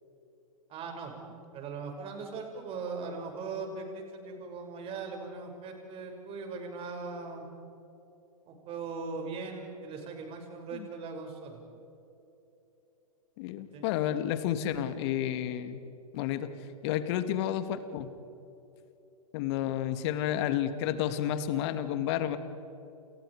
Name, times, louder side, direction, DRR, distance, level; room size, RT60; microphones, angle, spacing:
voice 1, 0.7-1.1 1.5-7.4 8.5-11.6 13.7-13.9, right 4 dB, 30° right, 3 dB, 6.2 m, -39 dB
voice 2, 13.4-15.8 16.1-16.5 16.8-18.1 19.3-22.4, left 11 dB, 45° left, 10 dB, 2.3 m, -31 dB
29.5 x 29.5 x 5.0 m, 3.0 s
hypercardioid pair, 115°, 19 cm